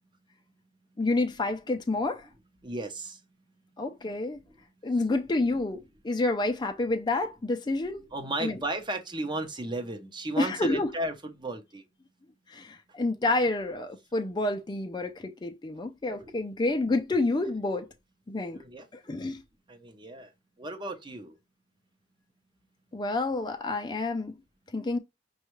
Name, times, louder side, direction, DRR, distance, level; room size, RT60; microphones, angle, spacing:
voice 1, 1.0-2.3 3.8-4.4 4.8-8.1 8.4-8.6 10.4-10.9 12.5-17.9 18.3-18.6 18.9-19.4 22.9-24.3 24.7-25.0, left 2 dB, 25° left, 0.4 m, -29 dB
voice 2, 2.6-3.2 8.1-11.8 16.2-16.3 18.5-18.9 19.7-20.3 20.6-21.3, right 2 dB, 25° right, 0.7 m, -34 dB
5.3 x 2.4 x 3.1 m
head